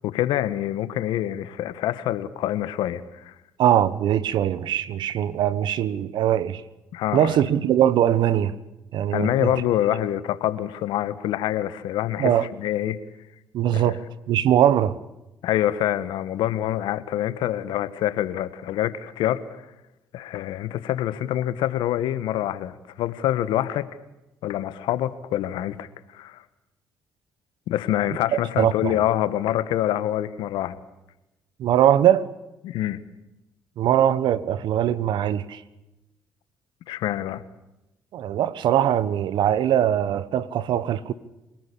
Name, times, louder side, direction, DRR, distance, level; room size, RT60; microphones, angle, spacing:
voice 1, 0.0-3.3 6.9-7.4 9.1-13.0 13.7-13.9 15.4-19.6 20.1-23.9 24.4-26.4 27.7-30.8 32.6-33.0 36.9-37.4, left 12 dB, 80° left, 1.5 m, -26 dB
voice 2, 3.6-6.6 7.1-8.5 8.9-9.5 12.2-12.5 13.5-14.0 14.3-15.0 28.3-29.0 31.6-32.3 33.8-35.6 38.1-41.1, right 10 dB, 70° right, 1.3 m, -21 dB
27.0 x 19.0 x 8.6 m
supercardioid pair, 60°, 8 cm